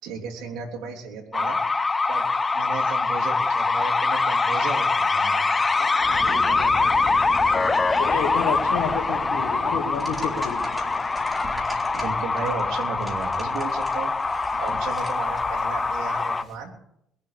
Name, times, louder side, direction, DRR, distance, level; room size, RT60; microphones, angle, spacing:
voice 1, 0.0-1.6 2.1-2.2 2.5-5.5 11.9-14.1 14.6-16.7, right 5 dB, 80° right, 0 dB, 3.4 m, -34 dB
sound 1, 1.3-16.4, left 3 dB, 25° left, 0.7 m, -23 dB
Waves surf, 6.0-16.5, right 1 dB, 30° right, 5.3 m, -40 dB
voice 2, 6.3-6.7 7.5-7.6 8.0-10.6, left 7 dB, 90° left, 2 dB, 1.6 m, -30 dB
sound 2, 9.9-15.3, right 1 dB, 15° right, 3.6 m, -41 dB
21.5 x 7.4 x 6.7 m, 0.76 s
cardioid pair, 90°, 0 cm